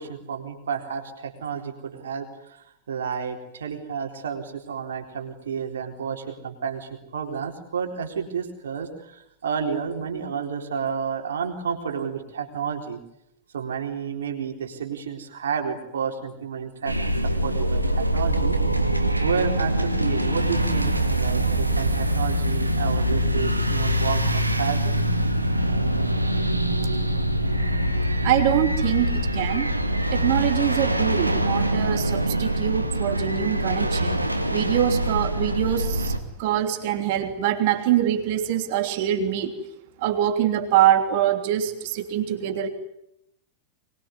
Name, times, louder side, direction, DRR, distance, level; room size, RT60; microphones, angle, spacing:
voice 1, 0.0-13.0 13.5-16.9 17.4-18.6 19.2-25.0, right 6 dB, 65° right, 4 dB, 4.1 m, -31 dB
sound 1, 16.9-36.2, right 1 dB, 85° right, 2.1 m, -24 dB
voice 2, 28.2-29.7 30.1-34.2 34.5-39.5 40.0-42.7, right 11 dB, 50° right, 7 dB, 3.2 m, -24 dB
24.5 x 21.5 x 9.7 m, 0.81 s
figure-of-eight pair, 90°, 0 cm